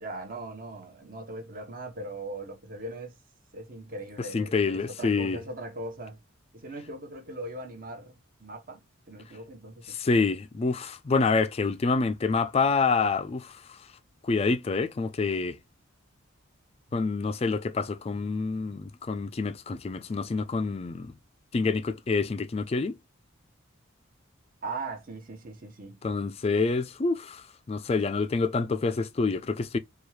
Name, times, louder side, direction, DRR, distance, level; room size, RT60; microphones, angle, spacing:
voice 1, 0.0-3.2 3.5-6.2 6.5-10.3 24.6-26.0, right 2 dB, 40° right, 0.9 m, -40 dB
voice 2, 4.2-5.4 9.9-13.9 14.2-15.6 16.9-21.1 21.5-23.0 26.0-29.8, left 4 dB, 30° left, 0.3 m, -27 dB
4.5 x 2.3 x 3.2 m
head